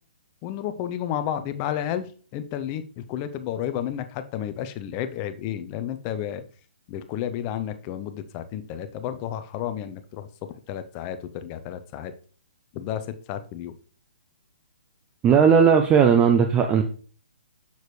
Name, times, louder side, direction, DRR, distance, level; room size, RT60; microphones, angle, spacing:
voice 1, 0.4-6.4 6.9-10.3 10.7-12.1 12.7-13.7, left 10 dB, 25° left, 10 dB, 0.6 m, -31 dB
voice 2, 15.2-16.8, right 7 dB, 15° right, 5 dB, 0.5 m, -17 dB
6.9 x 6.4 x 3.2 m, 0.41 s
hypercardioid pair, 145°, 6 cm